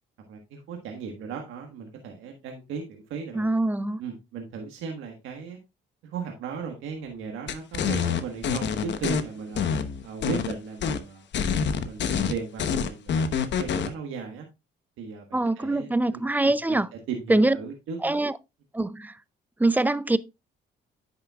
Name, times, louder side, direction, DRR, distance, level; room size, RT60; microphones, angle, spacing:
voice 1, 0.3-3.6 4.0-5.6 6.0-9.7 10.0-11.3 11.8-13.3 13.6-14.5 15.0-16.8 17.1-18.2, right 6 dB, 90° right, 1.4 m, -36 dB
voice 2, 3.3-4.0 15.3-16.9 17.3-17.6 18.0-18.4 18.7-19.1 19.6-20.2, right 2 dB, 10° right, 0.4 m, -23 dB
sound 1, 7.5-9.2 9.6-10.5 10.8-11.0 11.3-13.9, left 6 dB, 65° left, 1.0 m, -26 dB
9.7 x 6.7 x 2.3 m
cardioid pair, 90°, 20 cm